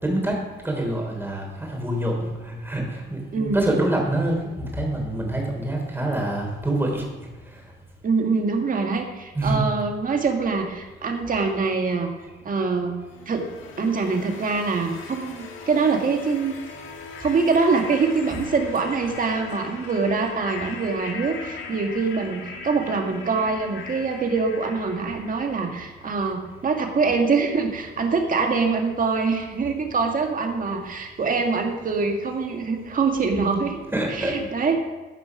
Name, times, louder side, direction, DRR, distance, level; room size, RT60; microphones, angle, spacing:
voice 1, 0.0-0.4 0.6-7.1 9.3-9.6 33.9-34.4, right 1 dB, 10° right, 0 dB, 3.5 m, -26 dB
voice 2, 3.3-3.7 8.0-12.1 12.4-13.0 13.2-13.5 13.8-16.5 17.2-33.8 34.1-34.8, right 4 dB, 45° right, 3 dB, 1.8 m, -24 dB
sound 1, 13.1-26.0, left 4 dB, 80° left, 1.6 m, -39 dB
14.0 x 5.5 x 6.0 m, 1.2 s
cardioid pair, 90°, 20 cm